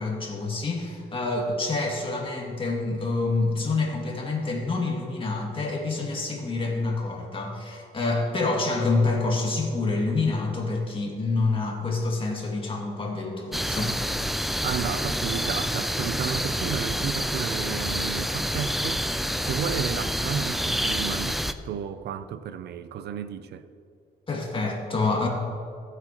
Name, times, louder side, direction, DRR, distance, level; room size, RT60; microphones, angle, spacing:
voice 1, 0.0-14.1 24.3-25.3, left 3 dB, 30° left, 2.3 m, -27 dB
sound 1, 13.5-21.5, equal, ahead, 0.4 m, -28 dB
voice 2, 14.6-19.2 19.4-23.7, right 8 dB, 75° right, 0.5 m, -33 dB
16.5 x 7.9 x 3.0 m
cardioid pair, 105°, 18 cm